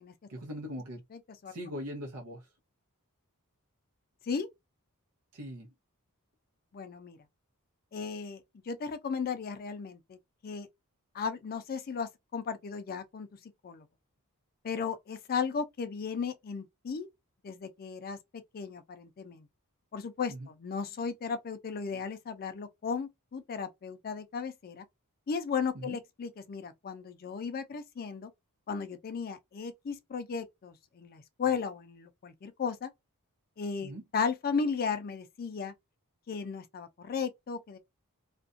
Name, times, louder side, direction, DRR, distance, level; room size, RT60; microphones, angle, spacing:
voice 1, 0.3-1.0 1.5-2.5 5.3-5.7 20.3-20.5 25.7-26.0 33.8-34.0, equal, 85° right, 0.7 m, -41 dB
voice 2, 1.1-1.5 4.2-4.5 6.7-7.2 7.9-10.2 10.4-10.7 11.1-13.8 14.6-17.1 17.4-19.5 19.9-24.8 25.3-28.3 28.7-32.9 33.6-35.7 36.3-37.8, left 5 dB, 40° left, 0.4 m, -35 dB
2.4 x 2.2 x 2.5 m
head